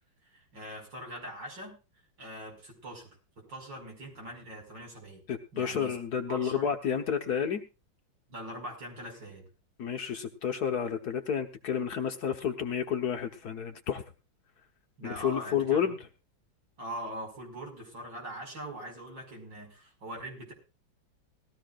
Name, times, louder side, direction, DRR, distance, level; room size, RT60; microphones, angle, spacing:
voice 1, 0.3-1.8 2.2-3.2 3.5-5.2 5.5-5.9 6.3-6.7 8.3-9.5 15.0-15.9 16.8-20.5, right 1 dB, 65° right, 1 dB, 6.2 m, -42 dB
voice 2, 5.3-7.6 9.8-14.0 15.0-16.0, left 8 dB, 55° left, 5 dB, 1.4 m, -30 dB
19.0 x 15.5 x 2.5 m, 0.30 s
omnidirectional pair, 2.1 m